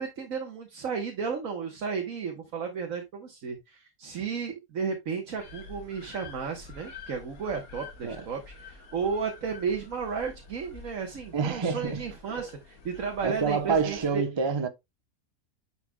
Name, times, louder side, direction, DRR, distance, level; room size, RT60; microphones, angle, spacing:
voice 1, 0.0-14.2, right 5 dB, 70° right, 1.6 m, -33 dB
sound 1, 5.4-14.1, left 4 dB, 80° left, 2.0 m, -48 dB
voice 2, 11.3-12.0 13.2-14.7, right 5 dB, 25° right, 0.7 m, -27 dB
9.8 x 5.9 x 2.3 m
omnidirectional pair, 1.5 m